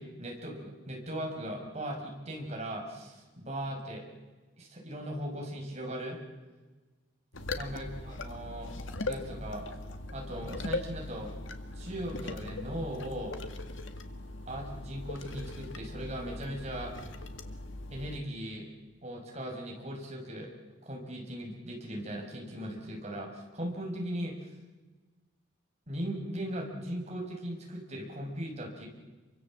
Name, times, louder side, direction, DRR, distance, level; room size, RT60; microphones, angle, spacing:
voice 1, 0.0-4.0 4.6-6.2 7.5-8.7 9.0-9.6 10.1-11.3 11.8-13.3 14.5-16.9 17.9-18.7 19.0-20.5 20.8-24.5 25.9-28.9, equal, 35° right, 0 dB, 5.6 m, -38 dB
sound 1, 7.3-18.2, left 2 dB, 85° left, 1.8 m, -40 dB
28.5 x 24.0 x 7.5 m, 1.3 s
head